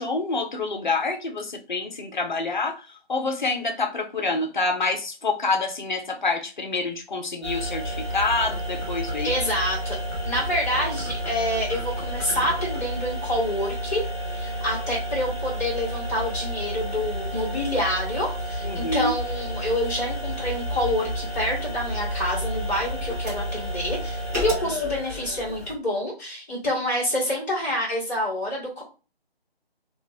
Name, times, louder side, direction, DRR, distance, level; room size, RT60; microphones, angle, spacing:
voice 1, 0.0-9.4 18.6-19.2, left 3 dB, 50° left, 5 dB, 0.7 m, -27 dB
sound 1, 7.4-25.7, equal, 15° right, 0.8 m, -30 dB
voice 2, 9.2-10.0 10.2-14.1 14.3-28.8, left 1 dB, 15° left, -7 dB, 1.2 m, -27 dB
3.1 x 2.3 x 2.7 m, 0.33 s
figure-of-eight pair, 155°, 31 cm